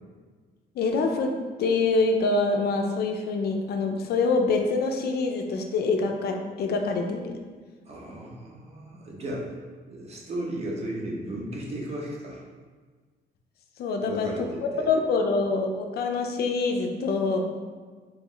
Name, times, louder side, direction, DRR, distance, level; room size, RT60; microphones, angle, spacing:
voice 1, 0.8-1.3 1.6-7.4 13.8-14.3 14.9-17.5, left 3 dB, 70° left, 3 dB, 0.5 m, -25 dB
voice 2, 7.9-9.6 9.9-12.4 14.0-14.9 15.3-15.4, right 1 dB, 40° right, -3 dB, 0.8 m, -35 dB
3.0 x 3.0 x 3.7 m, 1.5 s
cardioid pair, 160°, 17 cm